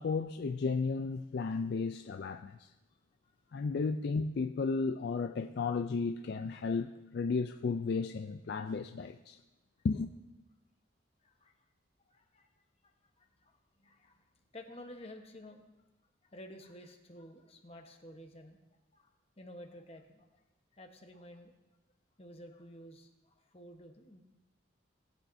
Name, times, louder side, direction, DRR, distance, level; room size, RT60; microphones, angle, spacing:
voice 1, 0.0-2.7 3.5-9.4 9.8-10.1, left 4 dB, 55° left, 0.3 m, -34 dB
voice 2, 11.2-11.6 12.1-12.5 12.8-15.7 16.2-18.6 18.9-19.1 19.4-20.4 20.7-21.5 22.2-24.2, left 1 dB, 30° left, 1.0 m, -52 dB
19.0 x 8.4 x 2.6 m
head